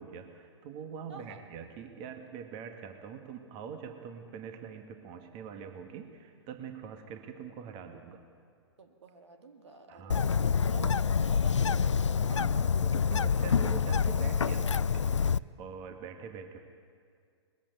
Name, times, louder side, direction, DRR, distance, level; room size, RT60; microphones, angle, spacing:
voice 1, 0.0-8.2 9.9-10.4 10.8-11.0 12.2-16.6, right 6 dB, 35° right, 6 dB, 1.8 m, -44 dB
voice 2, 8.8-12.0, right 3 dB, 75° right, 6 dB, 2.1 m, -50 dB
Bird, 10.1-15.4, left 6 dB, 85° left, 0.4 m, -27 dB
20.5 x 14.5 x 9.3 m, 2.2 s
figure-of-eight pair, 115°, 15 cm